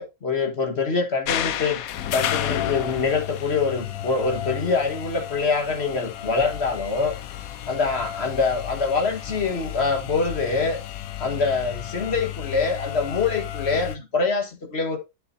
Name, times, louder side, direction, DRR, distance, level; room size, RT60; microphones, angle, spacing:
voice 1, 0.0-1.8 2.1-7.2 7.7-10.8 11.2-15.0, left 4 dB, 45° left, 1.7 m, -25 dB
sound 1, 1.3-14.0, left 11 dB, 70° left, 1.1 m, -32 dB
9.6 x 7.6 x 2.7 m
omnidirectional pair, 1.6 m